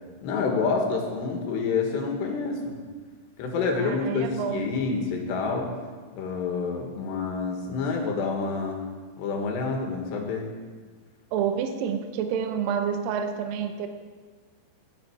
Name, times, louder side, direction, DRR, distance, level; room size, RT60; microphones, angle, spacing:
voice 1, 0.2-2.8 3.4-5.7 6.1-8.9 9.2-10.5, left 4 dB, 90° left, 2 dB, 3.9 m, -28 dB
voice 2, 3.8-4.7 11.3-13.9, right 7 dB, 75° right, 6 dB, 2.2 m, -28 dB
16.0 x 11.0 x 4.7 m, 1.5 s
omnidirectional pair, 4.8 m